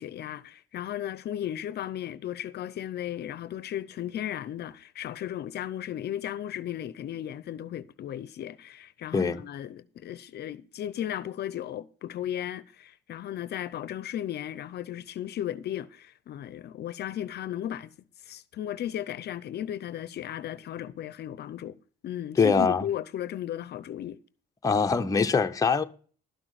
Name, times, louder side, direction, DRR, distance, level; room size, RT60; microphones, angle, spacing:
voice 1, 0.0-17.9 18.2-21.8 22.0-24.2, left 11 dB, 55° left, 0.6 m, -35 dB
voice 2, 22.4-22.9 24.6-25.8, left 5 dB, 15° left, 0.7 m, -23 dB
12.0 x 6.0 x 6.4 m
cardioid pair, 115°, 20 cm